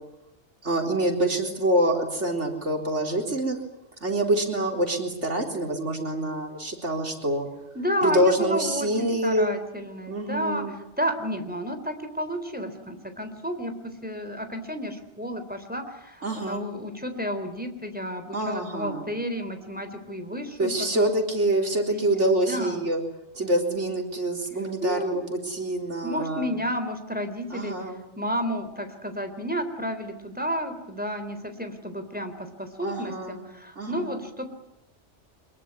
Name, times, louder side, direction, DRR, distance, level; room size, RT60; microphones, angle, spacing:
voice 1, 0.6-3.6 4.0-7.5 8.0-9.5 10.1-10.7 16.2-16.7 18.3-19.1 20.6-23.0 23.3-26.5 27.5-28.0 32.8-33.5 33.8-34.2, right 1 dB, 75° right, 3 dB, 4.4 m, -26 dB
voice 2, 7.8-10.7 11.0-13.7 14.0-21.1 21.9-22.8 24.8-25.2 26.0-27.7 28.2-34.5, equal, 5° right, 7 dB, 3.6 m, -31 dB
24.5 x 22.0 x 9.8 m, 0.86 s
omnidirectional pair, 1.2 m